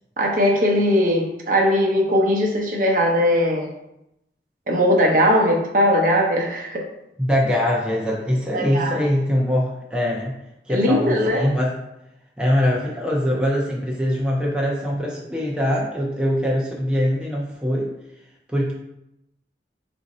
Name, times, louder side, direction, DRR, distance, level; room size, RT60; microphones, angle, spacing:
voice 1, 0.2-3.7 4.7-6.8 8.5-9.0 10.7-11.5, equal, 50° right, -1 dB, 0.7 m, -19 dB
voice 2, 7.2-10.3 10.7-11.7 12.4-17.9 18.5-18.7, equal, 5° right, -3 dB, 0.5 m, -22 dB
3.8 x 2.6 x 4.1 m, 0.85 s
head